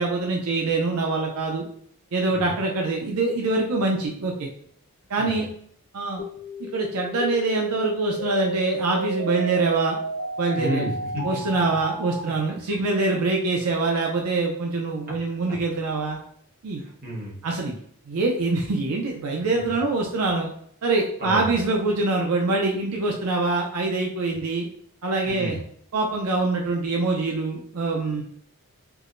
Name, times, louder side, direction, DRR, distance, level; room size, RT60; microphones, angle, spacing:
voice 1, 0.0-1.6 2.1-4.5 5.1-5.5 5.9-6.2 6.6-10.0 10.4-10.9 11.2-16.2 16.6-16.8 17.4-17.7 18.1-20.5 20.8-24.7 25.0-25.6 25.9-28.2, right 3 dB, 80° right, 0 dB, 0.5 m, -24 dB
sound 1, 6.2-12.2, right 2 dB, 55° left, 1.2 m, -31 dB
voice 2, 10.6-11.4 11.6-11.7 16.8-17.4 21.2-21.6 25.3-25.6, equal, 40° right, -4 dB, 1.1 m, -31 dB
4.6 x 2.1 x 2.5 m, 0.64 s
head